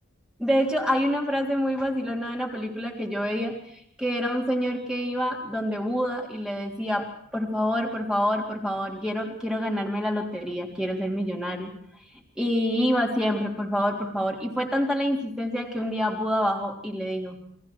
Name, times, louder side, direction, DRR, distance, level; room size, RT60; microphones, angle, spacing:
voice 1, 0.4-3.6 4.0-11.7 12.4-17.4, equal, 5° right, 0 dB, 3.5 m, -27 dB
29.5 x 23.0 x 4.7 m, 0.66 s
head